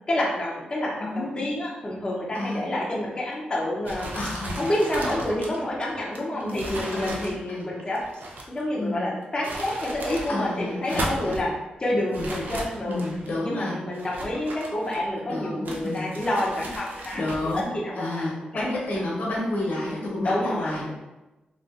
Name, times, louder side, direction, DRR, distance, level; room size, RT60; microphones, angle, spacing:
voice 1, 0.1-4.2 4.6-8.2 8.5-11.5 11.8-13.0 13.4-17.2 17.5-18.1 18.5-18.7 20.2-20.9, left 1 dB, 30° left, -5 dB, 0.6 m, -28 dB
voice 2, 1.0-1.5 2.3-2.7 4.1-4.7 5.0-5.2 6.3-7.7 8.7-9.0 10.3-11.4 12.1-12.3 12.9-13.8 15.2-16.1 17.1-17.7 18.0-20.9, left 1 dB, 75° left, -4 dB, 1.1 m, -31 dB
sound 1, 3.8-8.6 9.2-10.3 10.7-11.5 12.1-13.3 13.9-15.2 15.6-17.6, right 1 dB, 65° right, 0.5 m, -36 dB
3.8 x 2.5 x 2.4 m, 1.1 s
cardioid pair, 80°, 3 cm